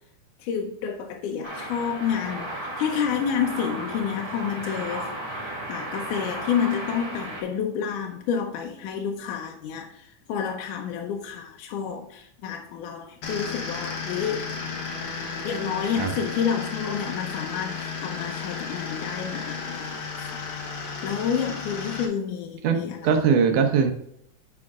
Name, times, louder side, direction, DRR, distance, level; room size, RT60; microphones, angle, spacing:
voice 1, 0.4-14.5 15.4-20.3 20.8-23.2, left 7 dB, 75° left, 2 dB, 2.2 m, -29 dB
sound 1, 1.4-7.4, right 1 dB, 10° right, 1.2 m, -34 dB
sound 2, 13.2-22.1, left 4 dB, 55° left, 1.5 m, -33 dB
voice 2, 22.6-23.9, right 6 dB, 75° right, 5 dB, 2.4 m, -21 dB
9.6 x 5.2 x 2.4 m, 0.73 s
omnidirectional pair, 3.8 m